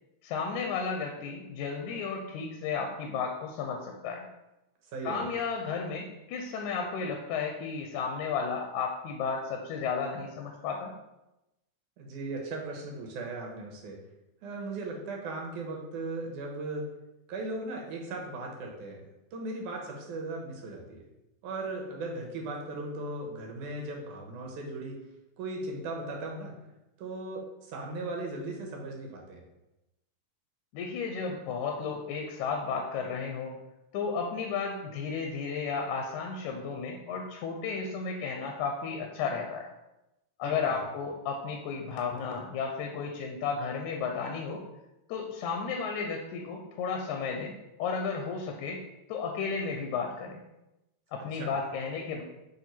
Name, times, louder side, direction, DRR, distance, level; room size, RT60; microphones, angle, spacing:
voice 1, 0.2-4.3 5.0-10.9 30.7-33.6 33.9-39.7 40.4-44.6 45.1-47.5 47.8-48.8 49.1-50.4 51.1-52.2, left 5 dB, 85° left, 2 dB, 2.0 m, -33 dB
voice 2, 4.9-5.2 12.0-14.0 14.4-16.8 17.3-19.0 19.3-21.0 21.4-25.0 25.4-26.5 27.0-29.5 40.4-40.8 51.3-51.5, right 2 dB, 90° right, 0 dB, 2.6 m, -37 dB
7.5 x 3.2 x 4.4 m, 0.95 s
omnidirectional pair, 3.4 m